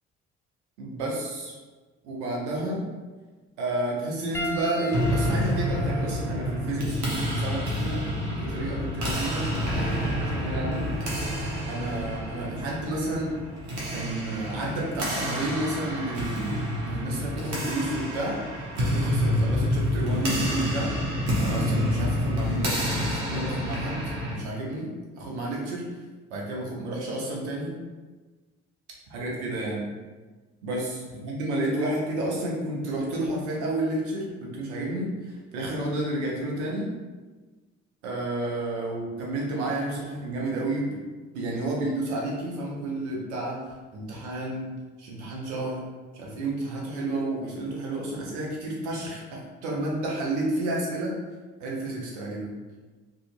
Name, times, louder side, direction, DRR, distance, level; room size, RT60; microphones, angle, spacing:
voice 1, 0.8-1.6 2.0-2.8 3.6-8.0 8.3-10.9 11.7-13.3 13.9-18.4 18.8-20.9 21.4-25.8 26.3-27.8 29.1-29.9 30.6-36.9 38.0-41.0 41.3-43.6 43.9-44.7 45.0-45.8 46.1-51.2 51.6-52.6, right 1 dB, 85° right, -3 dB, 0.7 m, -31 dB
Piano, 4.3-9.0 9.9-10.1 12.1-12.2, right 2 dB, 10° left, 0.3 m, -39 dB
sound 1, 4.9-24.4, equal, 55° right, 1.0 m, -28 dB
2.7 x 2.4 x 2.4 m, 1.3 s
hypercardioid pair, 50°, 34 cm